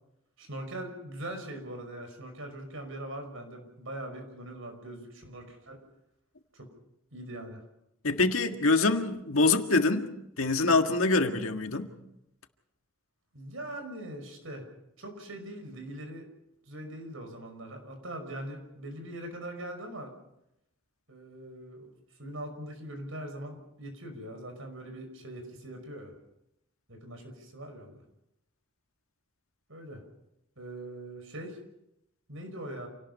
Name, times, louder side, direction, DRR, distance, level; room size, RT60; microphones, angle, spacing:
voice 1, 0.4-5.8 6.5-6.7 7.1-7.6 13.3-14.7 15.0-16.3 16.7-20.1 21.1-21.9 22.2-26.1 26.9-28.0 29.7-30.0 30.6-31.6 32.3-32.9, right 1 dB, 70° right, 6 dB, 5.5 m, -41 dB
voice 2, 8.0-10.1 10.4-11.9, left 3 dB, 80° left, 5 dB, 1.7 m, -25 dB
28.5 x 18.0 x 5.5 m, 0.83 s
head